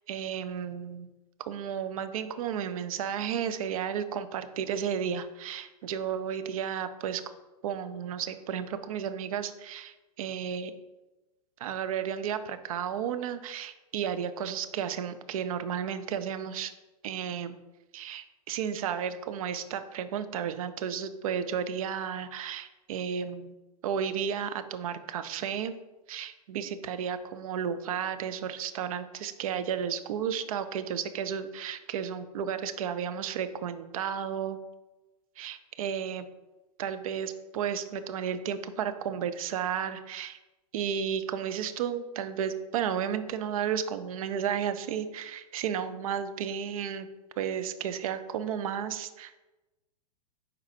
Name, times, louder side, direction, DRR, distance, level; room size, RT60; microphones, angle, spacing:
voice 1, 0.1-1.1 1.5-7.2 7.6-10.7 11.6-16.7 17.0-17.6 17.9-23.5 23.8-25.7 26.1-34.6 35.4-36.3 36.8-40.4 40.7-47.1 47.4-49.4, right 8 dB, 60° right, 11 dB, 0.6 m, -33 dB
9.5 x 4.0 x 2.8 m, 1.1 s
hypercardioid pair, 105°, 21 cm